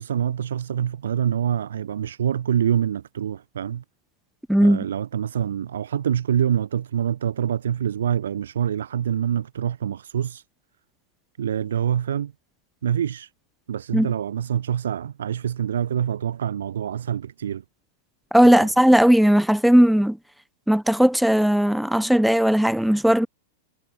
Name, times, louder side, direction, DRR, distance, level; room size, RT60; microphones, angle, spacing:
voice 1, 0.0-3.8 4.6-10.4 11.4-12.3 12.8-13.3 13.7-17.6 18.4-18.7, right 9 dB, 90° right, 1.7 m, -25 dB
voice 2, 18.3-20.2 20.7-23.3, equal, ahead, 0.9 m, -17 dB
hypercardioid pair, 140°, 0 cm